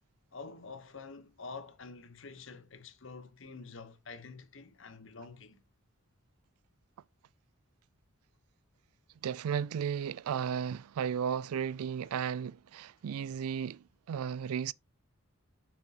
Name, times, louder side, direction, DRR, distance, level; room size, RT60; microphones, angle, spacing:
voice 1, 0.3-5.6, left 4 dB, 60° left, 1.0 m, -47 dB
voice 2, 9.2-14.7, right 7 dB, 90° right, 0.3 m, -34 dB
7.0 x 6.1 x 2.9 m
head